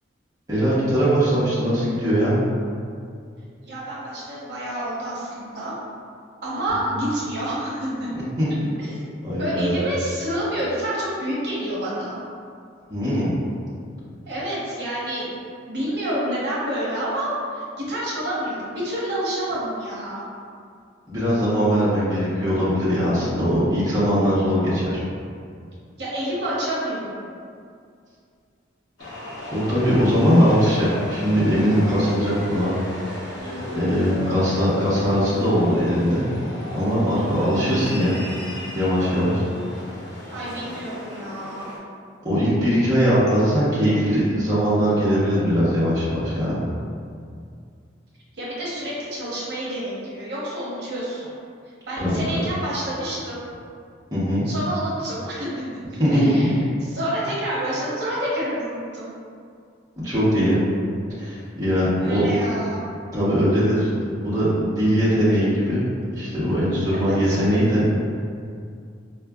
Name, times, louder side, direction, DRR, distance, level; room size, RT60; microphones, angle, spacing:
voice 1, 0.5-2.4 8.1-8.7 9.2-9.8 12.9-13.4 21.1-25.0 29.5-32.7 33.7-36.2 36.7-38.1 38.7-39.4 42.2-46.6 52.0-52.1 54.1-54.5 56.0-56.5 60.0-60.6 61.2-62.3 63.1-63.9 64.2-65.8 66.1-67.8, equal, 20° right, -11 dB, 0.7 m, -20 dB
voice 2, 3.7-5.7 6.4-8.1 8.8-9.0 9.4-12.2 14.3-15.3 15.7-20.2 26.0-27.2 33.4-33.8 37.1-37.5 40.3-41.7 48.4-51.3 51.9-53.4 54.4-56.6 56.9-59.1 62.0-62.8 66.9-67.4, right 1 dB, 55° right, -8 dB, 0.9 m, -28 dB
sound 1, 29.0-41.8, left 1 dB, 85° left, 0.9 m, -35 dB
4.7 x 2.3 x 2.3 m, 2.3 s
head